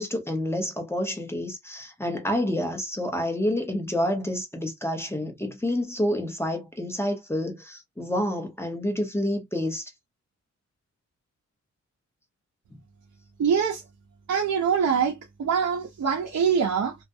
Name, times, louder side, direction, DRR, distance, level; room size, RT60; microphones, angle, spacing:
voice 1, 0.0-9.9, left 1 dB, 10° left, 0.7 m, -28 dB
voice 2, 13.4-13.8 14.3-17.0, right 7 dB, 65° right, 0.7 m, -24 dB
2.3 x 2.1 x 2.6 m
wide cardioid pair, 100°, 30 cm